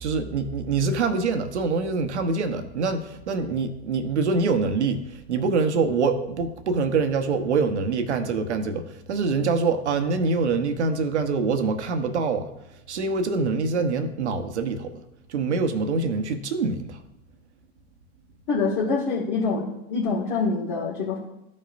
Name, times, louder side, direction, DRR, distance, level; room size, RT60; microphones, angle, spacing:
voice 1, 0.0-14.9 15.3-17.0, right 4 dB, 90° right, 7 dB, 1.0 m, -25 dB
voice 2, 18.5-19.6 19.9-21.2, left 4 dB, 75° left, -6 dB, 2.1 m, -25 dB
14.0 x 5.3 x 2.6 m, 0.89 s
hypercardioid pair, 95°, 33 cm